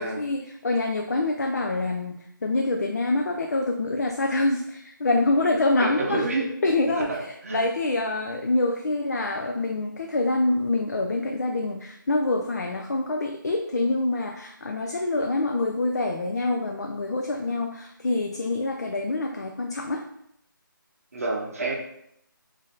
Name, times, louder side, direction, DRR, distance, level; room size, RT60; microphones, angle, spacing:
voice 1, 0.0-6.3 6.6-7.1 7.5-20.1, left 2 dB, 50° left, 2 dB, 0.4 m, -26 dB
voice 2, 5.8-6.5 6.8-7.6 21.1-21.8, right 3 dB, 40° right, 0 dB, 0.7 m, -29 dB
3.8 x 2.6 x 3.8 m, 0.75 s
figure-of-eight pair, 175°, 11 cm